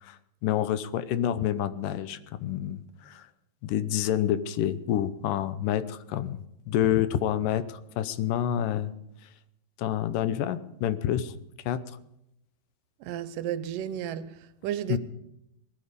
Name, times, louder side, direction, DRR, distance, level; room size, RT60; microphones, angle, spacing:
voice 1, 0.0-3.3 3.6-8.9 9.8-11.3 11.7-11.8 14.9-15.0, left 11 dB, 80° left, 2.4 m, -28 dB
voice 2, 13.0-15.0, right 10 dB, 80° right, 2.3 m, -33 dB
19.5 x 13.5 x 5.1 m
omnidirectional pair, 3.8 m